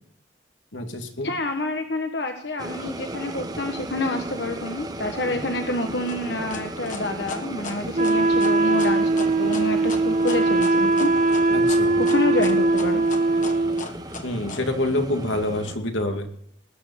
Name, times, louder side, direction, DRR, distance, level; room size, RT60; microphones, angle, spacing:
voice 1, 0.7-1.4 5.3-5.5 11.5-12.0 14.2-16.3, left 1 dB, 85° left, 4 dB, 2.4 m, -27 dB
voice 2, 1.2-11.1 12.0-13.0, left 2 dB, 60° left, 5 dB, 1.4 m, -28 dB
sound 1, 2.6-15.8, right 1 dB, 20° right, 1.0 m, -35 dB
sound 2, 6.1-14.6, left 4 dB, 40° left, 1.6 m, -36 dB
Wind instrument woodwind instrument, 7.9-13.9, right 3 dB, 40° right, 0.5 m, -20 dB
20.0 x 7.1 x 9.2 m, 0.73 s
head